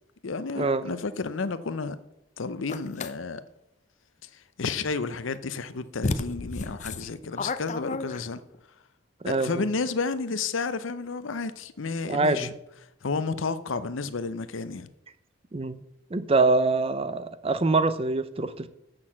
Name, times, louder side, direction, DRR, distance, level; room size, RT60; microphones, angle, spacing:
voice 1, 0.2-2.0 2.4-3.4 4.6-8.4 9.3-12.5 13.0-14.9, left 4 dB, 75° left, 0.7 m, -31 dB
sound 1, 2.7-3.1 5.3-5.4 6.0-8.6, left 3 dB, 35° left, 0.5 m, -32 dB
voice 2, 9.2-9.6 12.0-12.5 15.5-15.8 16.1-18.7, right 3 dB, 30° right, 0.5 m, -24 dB
7.8 x 6.4 x 7.3 m
head